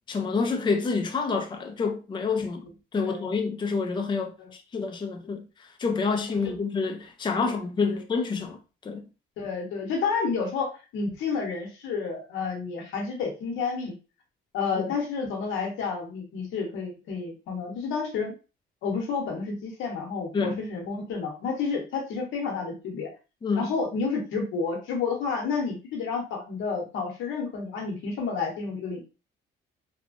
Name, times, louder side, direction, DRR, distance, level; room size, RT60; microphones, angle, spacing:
voice 1, 0.1-2.6 2.9-5.4 5.8-9.0 14.9-15.0 20.3-20.6 23.4-23.7, left 4 dB, 25° left, 0.4 m, -28 dB
voice 2, 9.4-13.9 14.5-18.3 18.8-23.1 23.6-29.0, left 5 dB, 85° left, 0.9 m, -30 dB
2.9 x 2.2 x 2.5 m
cardioid pair, 90°, 20 cm